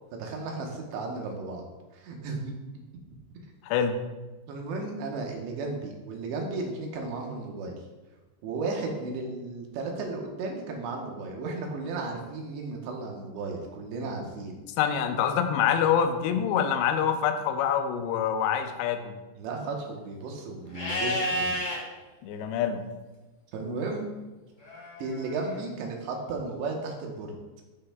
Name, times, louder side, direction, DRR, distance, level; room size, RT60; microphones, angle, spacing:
voice 1, 0.1-1.6 1.9-2.5 4.5-7.7 8.4-14.6 19.4-21.6 23.5-24.1 25.0-27.3, right 3 dB, 80° right, 1 dB, 3.2 m, -34 dB
voice 2, 3.6-4.0 14.8-19.1 22.2-22.8, left 8 dB, 85° left, 7 dB, 2.6 m, -26 dB
Livestock farm animals working animals, 20.7-21.8 24.6-25.6, equal, 40° left, 1.0 m, -31 dB
13.0 x 5.7 x 2.3 m, 1.2 s
omnidirectional pair, 5.1 m